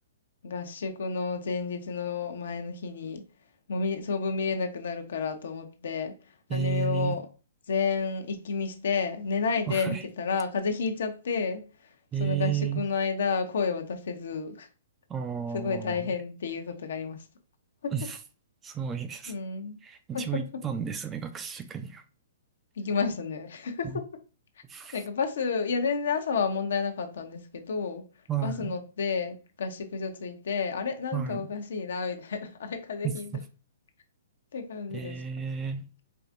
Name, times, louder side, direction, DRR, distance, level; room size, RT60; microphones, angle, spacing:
voice 1, 0.4-3.2 3.7-7.2 7.7-11.9 12.2-14.7 15.5-17.2 17.8-17.9 19.3-19.8 20.1-20.2 22.8-24.0 24.9-28.0 28.4-33.3 34.5-35.2, left 5 dB, 70° left, 0.7 m, -31 dB
voice 2, 6.5-7.2 9.7-10.0 12.1-12.8 15.1-16.0 17.9-18.2 18.6-19.3 19.8-22.0 23.8-24.0 24.7-25.0 28.3-28.7 31.1-31.5 33.0-33.4 34.9-35.9, right 7 dB, 15° right, 0.4 m, -32 dB
4.6 x 2.5 x 2.5 m
hypercardioid pair, 140°, 0 cm